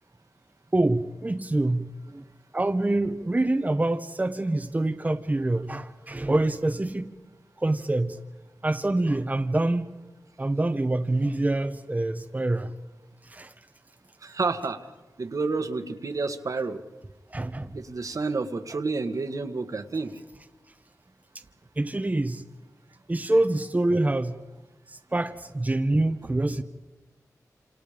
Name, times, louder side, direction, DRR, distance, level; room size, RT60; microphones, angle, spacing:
voice 1, 0.7-2.2 2.5-7.1 7.6-8.2 8.6-9.9 10.4-12.7 13.2-13.5 17.3-17.8 21.8-22.4 23.1-24.4 24.9-26.6, right 2 dB, 25° right, 1.1 m, -26 dB
voice 2, 14.2-14.9 15.2-16.8 17.7-20.2, right 3 dB, 60° right, 1.8 m, -29 dB
27.5 x 27.0 x 5.2 m
cardioid pair, 65°, 6 cm